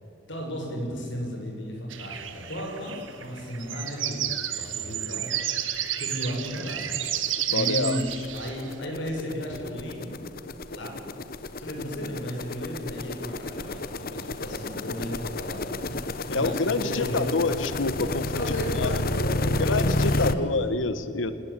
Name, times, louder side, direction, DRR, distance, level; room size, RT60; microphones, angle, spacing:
voice 1, 0.3-5.6 6.0-7.0 7.5-10.3 10.6-11.0 11.6-17.4 18.3-20.6, equal, 70° left, 0 dB, 7.1 m, -34 dB
sound 1, 1.9-8.7, right 11 dB, 90° right, 1.8 m, -31 dB
sound 2, 4.9-5.0 5.4-5.5 5.7-20.3, left 2 dB, 50° left, 1.0 m, -31 dB
voice 2, 7.5-8.0 16.3-19.0 19.6-21.3, left 3 dB, 85° left, 12 dB, 1.2 m, -27 dB
26.5 x 19.0 x 9.0 m, 2.9 s
head